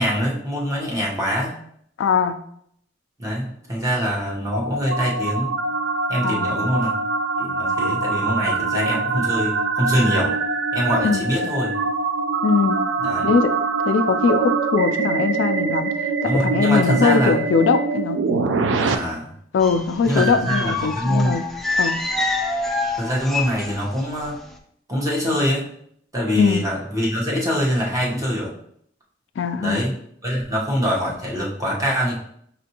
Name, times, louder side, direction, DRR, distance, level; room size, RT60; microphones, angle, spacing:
voice 1, 0.0-1.6 3.2-5.7 6.1-6.9 7.4-10.4 10.7-11.8 13.0-13.3 16.2-17.4 18.8-19.3 20.1-21.4 23.0-24.4 24.9-25.7 26.1-28.5 29.6-29.9 30.2-32.2, equal, 20° right, -4 dB, 1.0 m, -24 dB
voice 2, 2.0-2.4 6.2-6.5 11.0-11.2 12.4-12.8 13.2-13.6 13.9-18.3 19.5-21.5 21.8-22.0 26.4-26.7 29.4-29.8, left 5 dB, 80° left, 9 dB, 0.3 m, -21 dB
sound 1, 3.9-18.9, right 4 dB, 80° right, 0.4 m, -24 dB
sound 2, 19.6-24.1 24.3-24.5, left 2 dB, ahead, 0.4 m, -26 dB
5.4 x 2.5 x 2.8 m, 0.67 s
head